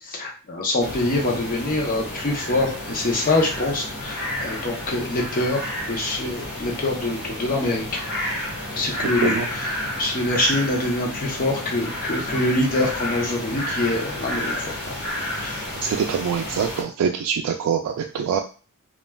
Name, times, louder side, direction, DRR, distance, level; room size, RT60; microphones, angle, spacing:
voice 1, 0.0-8.0 8.7-15.0 15.4-15.7, left 2 dB, 40° left, 0 dB, 0.7 m, -25 dB
sound 1, 0.8-16.8, left 1 dB, 75° left, 1.2 m, -31 dB
voice 2, 15.8-18.4, right 7 dB, 85° right, 3 dB, 0.3 m, -24 dB
3.2 x 2.3 x 2.2 m, 0.37 s
head